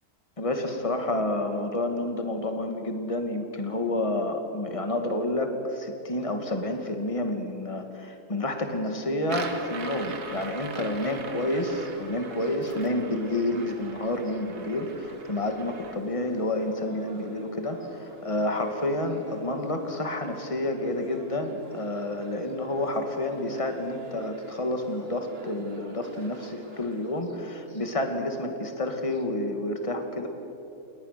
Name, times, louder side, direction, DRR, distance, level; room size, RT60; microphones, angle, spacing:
voice 1, 0.4-30.3, left 1 dB, 20° left, 5 dB, 2.1 m, -29 dB
sound 1, 9.2-16.0, right 4 dB, 80° right, 2.3 m, -41 dB
sound 2, 11.2-27.2, right 2 dB, 40° right, 2.3 m, -47 dB
29.5 x 19.0 x 6.7 m, 2.8 s
omnidirectional pair, 1.6 m